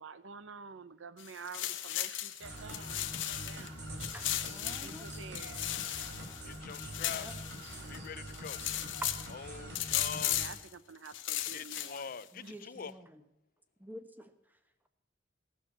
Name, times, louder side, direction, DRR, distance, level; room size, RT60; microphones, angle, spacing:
voice 1, 0.0-3.9 4.4-5.7 7.7-7.9 10.2-12.9, right 5 dB, 90° right, 0.7 m, -50 dB
sound 1, 1.2-3.7 4.0-8.0 8.3-9.3 9.7-10.7 11.0-12.2, left 13 dB, 85° left, 1.0 m, -36 dB
sound 2, 2.4-10.5, right 1 dB, 65° right, 3.6 m, -45 dB
voice 2, 4.1-5.1 7.0-7.3 12.3-13.2 13.8-14.3, equal, 10° right, 1.1 m, -49 dB
voice 3, 6.4-7.3 7.9-8.6 9.3-10.4 11.5-12.9, left 6 dB, 50° left, 0.5 m, -44 dB
15.5 x 7.0 x 8.5 m
head